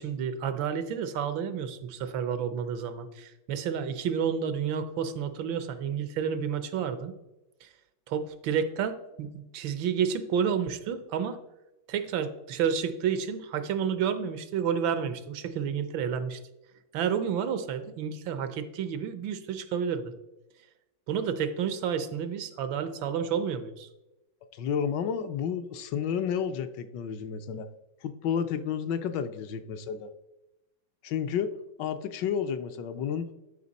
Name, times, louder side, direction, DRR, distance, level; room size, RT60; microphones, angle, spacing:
voice 1, 0.0-7.1 7.6-7.7 8.1-11.4 11.9-16.4 16.9-20.1 21.1-23.9, right 7 dB, 80° right, 11 dB, 1.5 m, -30 dB
voice 2, 24.5-27.7 28.0-30.1 31.0-33.3, left 7 dB, 70° left, 10 dB, 1.2 m, -31 dB
11.5 x 5.1 x 4.0 m, 0.97 s
omnidirectional pair, 2.1 m